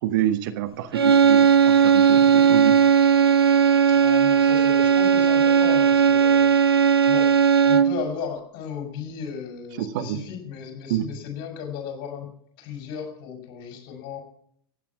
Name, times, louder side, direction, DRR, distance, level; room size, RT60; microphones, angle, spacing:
voice 1, 0.0-2.7 9.8-10.2 10.9-11.1, right 12 dB, 50° right, 9 dB, 1.3 m, -27 dB
sound 1, 0.9-8.1, right 7 dB, 75° right, 0.7 m, -17 dB
voice 2, 3.9-6.5 7.1-7.3 7.6-12.3 12.6-14.2, left 7 dB, 45° left, 4 dB, 5.6 m, -35 dB
15.5 x 10.0 x 7.4 m, 0.65 s
figure-of-eight pair, 85°, 13 cm